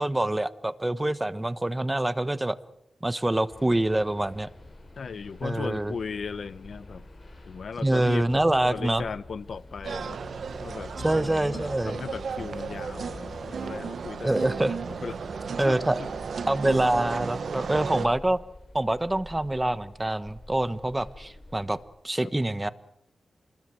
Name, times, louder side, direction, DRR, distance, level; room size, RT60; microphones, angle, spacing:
voice 1, 0.0-2.6 3.0-4.5 5.4-5.9 7.8-9.0 11.0-12.0 14.2-14.8 15.6-16.0 16.5-18.4 18.7-21.8 22.0-22.7, right 1 dB, 15° right, 1.1 m, -25 dB
sound 1, 3.5-21.8, left 2 dB, 40° left, 7.7 m, -47 dB
voice 2, 5.0-7.0 7.5-10.2 10.6-14.5 14.9-15.2 15.6-16.1 18.0-18.2 22.2-22.3, left 5 dB, 70° left, 0.9 m, -37 dB
sound 2, 9.8-18.1, right 5 dB, 75° right, 1.2 m, -34 dB
27.0 x 21.0 x 7.7 m
wide cardioid pair, 90°, 0 cm